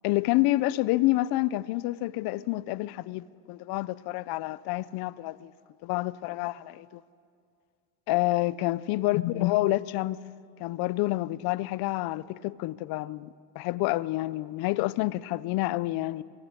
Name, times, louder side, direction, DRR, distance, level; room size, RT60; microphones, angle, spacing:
voice 1, 0.0-5.5 5.8-7.0 8.1-10.2 10.6-13.3 13.5-16.2, left 18 dB, 55° left, 0.8 m, -28 dB
23.0 x 22.5 x 9.8 m
supercardioid pair, 110°, 44 cm